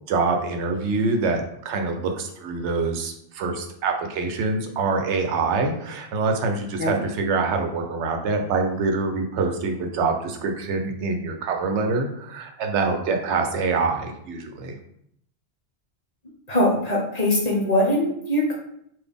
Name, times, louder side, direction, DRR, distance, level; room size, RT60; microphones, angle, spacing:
voice 1, 0.1-14.8, right 4 dB, 85° right, 4 dB, 0.9 m, -25 dB
voice 2, 16.5-18.5, left 1 dB, 40° left, -2 dB, 0.8 m, -22 dB
3.9 x 2.4 x 3.4 m, 0.71 s
omnidirectional pair, 1.1 m